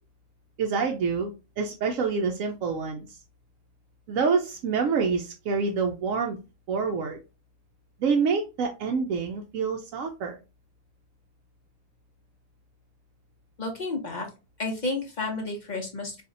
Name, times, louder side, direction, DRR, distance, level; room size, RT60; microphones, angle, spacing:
voice 1, 0.6-3.2 4.1-6.4 6.7-7.2 8.0-10.4, right 5 dB, 70° right, 2 dB, 0.9 m, -27 dB
voice 2, 13.6-14.3 14.6-16.2, left 2 dB, 40° left, 1 dB, 0.7 m, -31 dB
4.1 x 2.7 x 2.5 m, 0.29 s
omnidirectional pair, 1.5 m